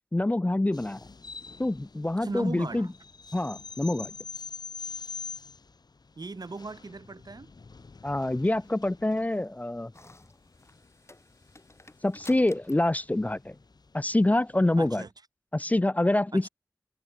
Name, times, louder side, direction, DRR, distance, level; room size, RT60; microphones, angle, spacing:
voice 1, 0.1-1.0 1.6-2.9 3.3-4.1 8.0-9.9 12.0-13.6 13.9-15.0 15.5-16.5, left 1 dB, 20° left, 0.3 m, -26 dB
sound 1, 0.7-14.9, left 4 dB, 75° left, 0.9 m, -45 dB
voice 2, 2.2-2.9 6.2-7.5 14.8-15.1 16.3-16.5, right 3 dB, 70° right, 1.5 m, -38 dB
sound 2, 9.9-14.2, left 2 dB, 40° left, 3.9 m, -53 dB
wide cardioid pair, 40°, 7 cm